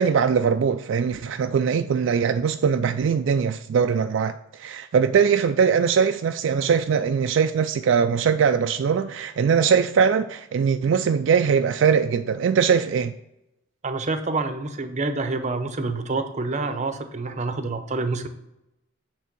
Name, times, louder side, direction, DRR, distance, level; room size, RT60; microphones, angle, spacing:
voice 1, 0.0-4.3 4.6-13.1, right 6 dB, 65° right, 0.3 m, -21 dB
voice 2, 13.8-18.3, right 3 dB, 35° right, 0.7 m, -27 dB
8.2 x 3.5 x 6.0 m
head